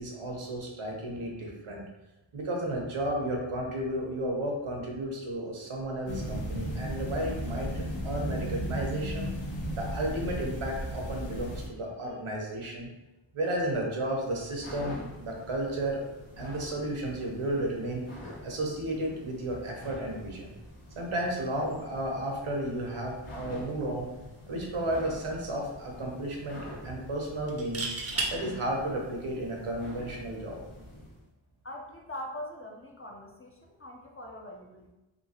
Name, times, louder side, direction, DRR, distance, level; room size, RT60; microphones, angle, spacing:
voice 1, 0.0-1.9 2.3-9.3 9.7-12.9 13.3-16.0 16.4-18.1 18.4-20.5 21.0-24.1 24.5-27.9 28.3-30.6, right 1 dB, 85° right, 0 dB, 0.9 m, -33 dB
sound 1, 6.1-11.7, equal, 65° left, 0.8 m, -34 dB
sound 2, 14.0-31.2, left 1 dB, 85° left, 1.1 m, -46 dB
sound 3, 24.6-24.9 25.2-25.3 27.5-28.3 30.1-30.4, right 3 dB, 30° right, 0.5 m, -32 dB
voice 2, 31.6-34.9, left 1 dB, 30° left, 0 dB, 0.4 m, -42 dB
3.0 x 2.7 x 2.8 m, 1.0 s
wide cardioid pair, 95°, 49 cm